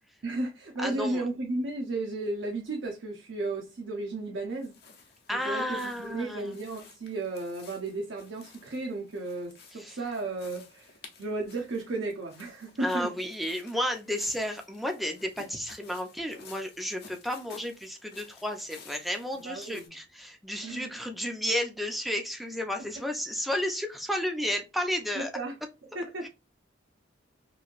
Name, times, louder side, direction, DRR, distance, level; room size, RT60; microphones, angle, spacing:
voice 1, 0.2-4.8 5.3-10.9 11.2-13.1 19.4-19.9 20.6-20.9 25.1-25.5 25.9-26.3, right 2 dB, 70° right, 0.7 m, -34 dB
voice 2, 0.8-1.3 5.3-6.5 9.7-10.0 12.8-25.3 26.2-26.3, equal, ahead, 0.5 m, -32 dB
sound 1, 4.5-19.9, left 5 dB, 55° left, 0.8 m, -54 dB
3.0 x 2.7 x 2.4 m
head